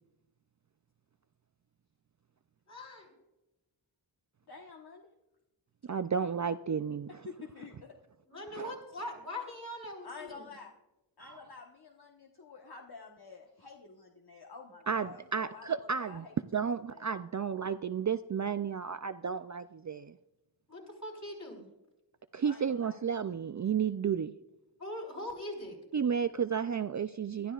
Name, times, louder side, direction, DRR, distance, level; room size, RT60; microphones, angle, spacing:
voice 1, 2.7-3.1 8.3-10.5 20.7-21.6 24.8-25.8, left 1 dB, 35° left, 0 dB, 4.8 m, -41 dB
voice 2, 4.5-5.1 7.2-7.9 10.0-10.7 11.2-15.7 16.0-17.1 22.4-23.0, left 4 dB, 55° left, 1 dB, 1.2 m, -49 dB
voice 3, 5.9-7.3 8.6-8.7 11.2-11.5 14.9-16.3 16.5-20.1 22.3-24.3 25.9-27.5, right 7 dB, 40° right, 11 dB, 0.4 m, -32 dB
22.0 x 13.0 x 2.4 m, 0.98 s
wide cardioid pair, 75°, 46 cm